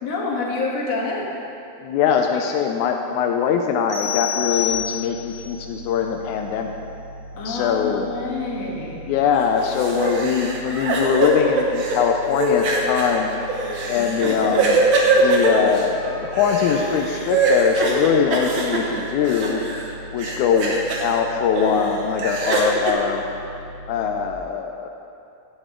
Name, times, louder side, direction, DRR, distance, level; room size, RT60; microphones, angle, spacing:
voice 1, 0.0-1.3 2.3-2.4 7.4-9.0 14.0-14.4, left 3 dB, 60° left, -2 dB, 2.5 m, -28 dB
voice 2, 1.8-6.8 7.5-8.1 9.0-13.3 13.9-14.8 15.1-19.6 20.1-23.2 23.9-24.9, left 7 dB, 80° left, 4 dB, 2.0 m, -22 dB
sound 1, 3.9-5.4, left 10 dB, 25° left, 3.2 m, -27 dB
sound 2, 4.7-24.4, equal, 85° right, 2.3 m, -39 dB
Group Cry Lementations, 9.4-19.9 20.2-21.1 21.5-22.9, right 3 dB, 55° right, 1.6 m, -23 dB
15.5 x 8.6 x 3.7 m, 2.6 s
omnidirectional pair, 3.5 m